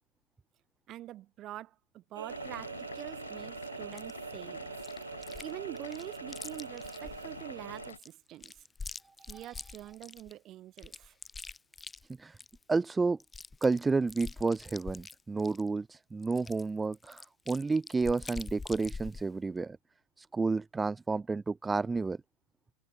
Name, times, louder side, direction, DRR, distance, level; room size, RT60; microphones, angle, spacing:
voice 1, 0.9-4.7 5.4-8.6 9.2-11.2, right 14 dB, 35° right, 3.6 m, -45 dB
sound 1, 2.2-7.9, right 7 dB, 70° right, 1.1 m, -43 dB
sound 2, 2.3-8.0, left 6 dB, 70° left, 6.8 m, -47 dB
Chewing mastication, 4.0-4.1 4.8-5.5 5.8-7.3 7.8-10.3 10.8-12.6 12.9-13.0 13.2-15.7 16.2-19.3, left 4 dB, 10° left, 7.6 m, -45 dB
voice 2, 12.7-13.2 13.6-19.8 20.2-22.2, right 4 dB, 10° right, 0.8 m, -31 dB
figure-of-eight pair, 90°, 0 cm